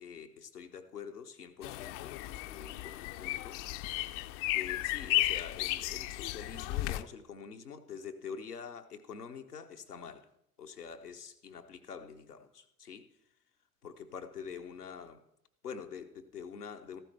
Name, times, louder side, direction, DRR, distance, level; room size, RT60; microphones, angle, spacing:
voice 1, 0.0-2.1 2.4-3.6 4.5-10.3 10.6-13.1 13.8-15.2 15.6-17.0, left 6 dB, 85° left, 6 dB, 0.9 m, -46 dB
sound 1, 1.6-7.0, left 16 dB, 50° left, 0.6 m, -34 dB
14.5 x 12.0 x 3.3 m, 0.76 s
figure-of-eight pair, 65°, 45 cm